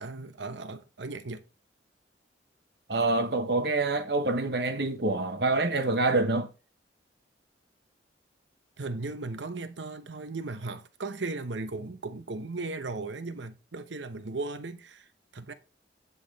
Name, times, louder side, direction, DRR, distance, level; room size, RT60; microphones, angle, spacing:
voice 1, 0.0-1.4 8.8-15.5, right 3 dB, 85° right, 0.9 m, -37 dB
voice 2, 2.9-6.5, right 2 dB, 60° right, 1.1 m, -26 dB
9.5 x 5.7 x 4.1 m
head